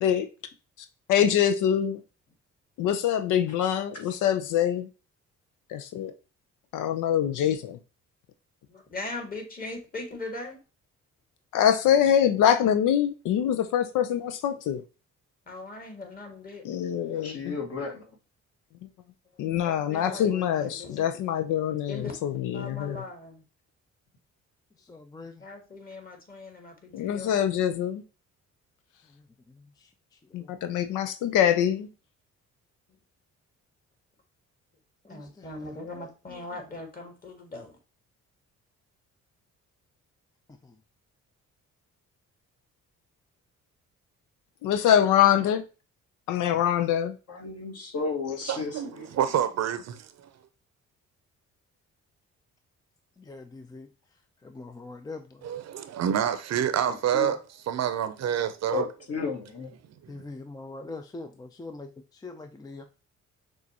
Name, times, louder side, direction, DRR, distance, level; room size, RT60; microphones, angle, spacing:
voice 1, 1.1-2.0 2.8-4.9 5.7-6.1 6.7-7.8 11.5-14.8 16.6-17.6 19.4-23.0 26.9-28.0 30.3-31.9 44.6-45.6 46.3-47.1, left 9 dB, 85° left, 0.5 m, -24 dB
voice 2, 8.7-10.6 15.4-16.7 19.3-21.1 21.9-22.2 22.5-23.4 25.4-27.4 32.9-33.0 35.1-37.8, left 2 dB, 30° left, 1.7 m, -40 dB
voice 3, 17.1-18.1 47.3-49.1 56.9-57.3 58.7-59.7, left 5 dB, 55° left, 1.7 m, -34 dB
voice 4, 20.1-20.6 24.9-25.4 29.8-29.9 30.4-30.5 35.0-35.5 36.0-36.1 40.6-40.7 53.2-53.9 54.4-55.4 60.1-62.9, left 3 dB, 15° left, 0.4 m, -43 dB
voice 5, 48.5-50.1 55.4-57.4 57.7-58.9 60.0-60.3, right 9 dB, 60° right, 0.6 m, -27 dB
6.2 x 2.4 x 2.8 m
cardioid pair, 90°, 30 cm